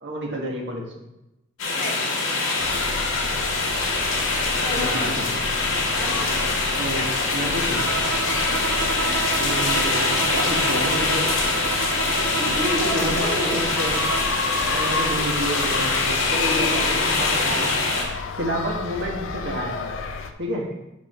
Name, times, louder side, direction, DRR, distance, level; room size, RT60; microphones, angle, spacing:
voice 1, 0.0-0.8 4.7-5.2 6.8-7.8 9.4-11.3 12.8-14.0 14.6-17.7 18.4-19.9 20.4-20.7, equal, 55° right, -1 dB, 1.5 m, -29 dB
sound 1, 1.6-18.0, left 3 dB, 80° left, 2.1 m, -24 dB
sound 2, 2.6-20.3, left 4 dB, 65° left, 0.6 m, -31 dB
voice 2, 4.6-5.1 5.5-5.6 5.9-6.6 8.4-8.7 12.4-13.6 16.5-16.8, equal, 5° left, -7 dB, 2.8 m, -31 dB
Bowed string instrument, 7.7-14.4, right 6 dB, 80° right, 0.4 m, -31 dB
5.6 x 5.3 x 5.6 m, 0.93 s
head